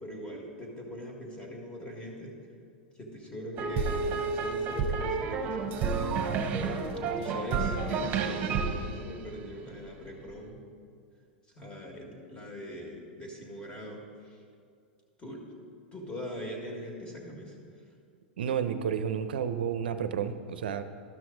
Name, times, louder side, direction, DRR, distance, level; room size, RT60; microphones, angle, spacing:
voice 1, 0.0-2.4 2.9-6.1 7.2-10.6 11.5-14.4 15.2-15.4 15.9-17.6, equal, 20° left, 0 dB, 1.7 m, -41 dB
sound 1, 3.6-9.9, right 5 dB, 35° right, 1.0 m, -30 dB
voice 2, 18.4-20.8, right 8 dB, 75° right, 10 dB, 0.5 m, -31 dB
12.0 x 6.0 x 3.9 m, 2.3 s
hypercardioid pair, 110°, 5 cm